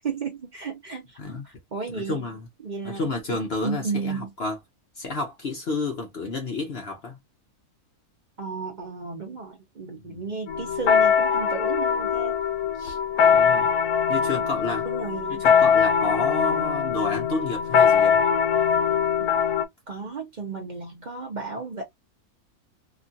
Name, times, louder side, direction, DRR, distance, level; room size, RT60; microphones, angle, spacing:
voice 1, 0.0-2.2 2.6-3.4 3.6-4.3 8.4-12.4 12.8-13.0 14.8-15.5 19.9-21.8, right 4 dB, 45° right, 0.6 m, -34 dB
voice 2, 1.9-2.4 2.8-4.6 5.0-7.2 10.0-10.2 13.3-13.7 14.1-14.9 15.4-18.2, left 3 dB, 50° left, 0.9 m, -30 dB
sound 1, 10.5-19.6, left 7 dB, 85° left, 1.1 m, -22 dB
3.0 x 2.3 x 2.6 m
omnidirectional pair, 1.6 m